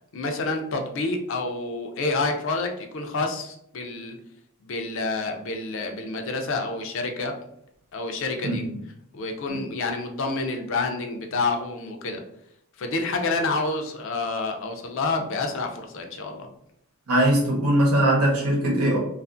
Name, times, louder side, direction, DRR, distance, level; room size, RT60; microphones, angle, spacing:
voice 1, 0.1-4.1 4.6-7.3 7.9-8.6 9.1-12.2 12.8-16.5, left 3 dB, 60° left, 4 dB, 0.5 m, -28 dB
voice 2, 8.4-8.8 9.5-9.6 17.1-19.0, right 1 dB, 85° right, -1 dB, 0.9 m, -21 dB
2.5 x 2.4 x 2.5 m, 0.74 s
head